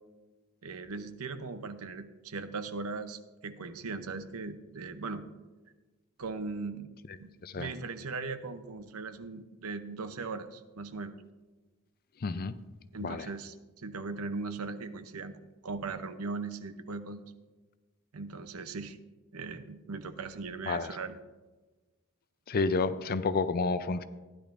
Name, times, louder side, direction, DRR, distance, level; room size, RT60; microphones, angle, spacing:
voice 1, 0.6-5.2 6.2-6.9 7.2-11.1 12.9-15.3 15.6-17.2 18.1-19.0 19.3-21.2, right 4 dB, 80° right, 10 dB, 0.7 m, -39 dB
voice 2, 7.4-7.7 12.2-12.5 13.0-13.3 20.7-21.0 22.5-24.0, left 4 dB, 45° left, 13 dB, 0.5 m, -30 dB
15.5 x 10.5 x 2.6 m, 1.2 s
head